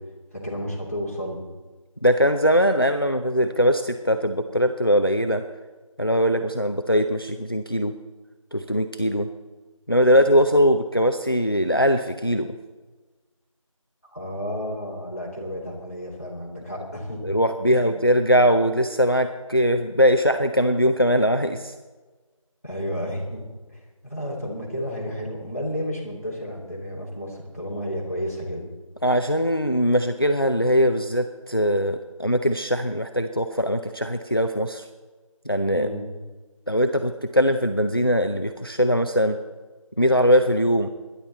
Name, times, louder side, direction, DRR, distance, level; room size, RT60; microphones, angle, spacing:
voice 1, 0.3-1.4 14.1-17.2 17.7-18.0 22.6-23.4 23.7-28.6 35.7-36.0, equal, 25° left, -4 dB, 2.9 m, -32 dB
voice 2, 2.0-5.4 6.0-7.9 8.5-9.3 9.9-12.5 17.2-21.7 29.0-34.8 35.5-35.9 36.7-39.4 40.0-40.9, equal, 40° left, 7 dB, 0.6 m, -21 dB
22.0 x 10.5 x 4.1 m, 1.3 s
figure-of-eight pair, 180°, 18 cm